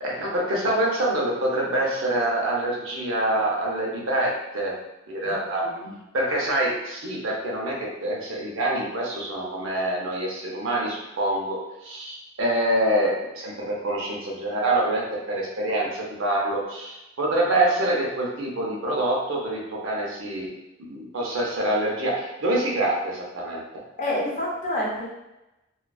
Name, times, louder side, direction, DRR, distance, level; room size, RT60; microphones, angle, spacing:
voice 1, 0.0-4.7 5.1-5.6 6.1-20.5 20.8-23.6, right 1 dB, 85° right, -2 dB, 0.6 m, -26 dB
voice 2, 5.2-5.9 24.0-25.1, left 1 dB, 40° left, -4 dB, 0.6 m, -29 dB
2.4 x 2.2 x 2.3 m, 0.95 s
head